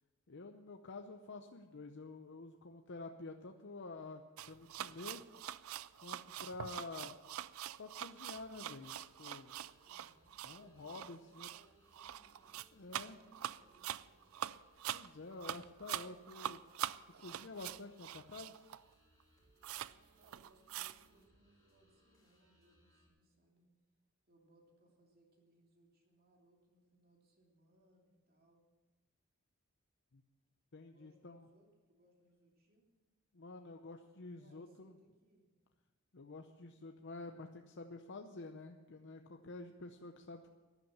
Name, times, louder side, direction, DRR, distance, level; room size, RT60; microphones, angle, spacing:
voice 1, 0.3-5.3 6.0-7.2 7.8-9.5 10.4-11.5 12.7-13.2 14.9-16.6 17.1-18.6 30.1-30.2 30.7-31.5 33.3-34.9 36.1-40.5, left 3 dB, 60° left, 4 dB, 0.8 m, -49 dB
sound 1, 4.4-18.9 19.2-19.3 19.6-19.9 20.2-21.1, right 11 dB, 75° right, 0.4 m, -44 dB
sound 2, 8.3-23.1, equal, 15° left, 4.1 m, -72 dB
voice 2, 9.8-14.1 20.1-23.7 24.3-28.6 30.8-32.9 34.3-35.5, right 1 dB, 45° right, 0 dB, 3.0 m, -70 dB
13.5 x 11.0 x 7.3 m, 1.2 s
head